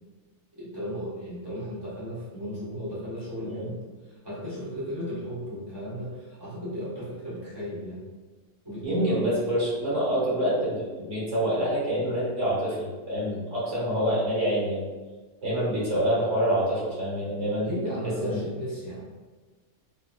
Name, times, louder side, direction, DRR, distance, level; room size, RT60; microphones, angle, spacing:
voice 1, 0.5-3.8 4.0-8.0 8.6-9.3 17.6-19.1, equal, 20° right, -11 dB, 1.4 m, -35 dB
voice 2, 8.8-14.9 15.4-17.7 18.2-18.4, equal, 60° right, -8 dB, 1.7 m, -26 dB
3.1 x 2.8 x 2.5 m, 1.3 s
omnidirectional pair, 1.4 m